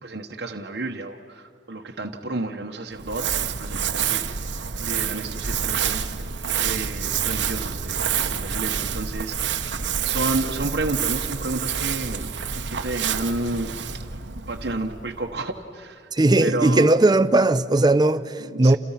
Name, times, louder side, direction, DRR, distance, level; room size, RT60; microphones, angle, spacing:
voice 1, 0.0-4.2 4.8-6.0 6.5-9.7 10.0-12.3 12.7-13.7 14.5-15.9 16.4-16.9 18.6-18.8, right 2 dB, 65° right, 1.2 m, -31 dB
Crumpling crinkling, 3.0-15.4, right 7 dB, 85° right, 1.1 m, -28 dB
voice 2, 16.1-18.8, right 2 dB, 25° right, 0.6 m, -18 dB
30.0 x 29.0 x 5.8 m
head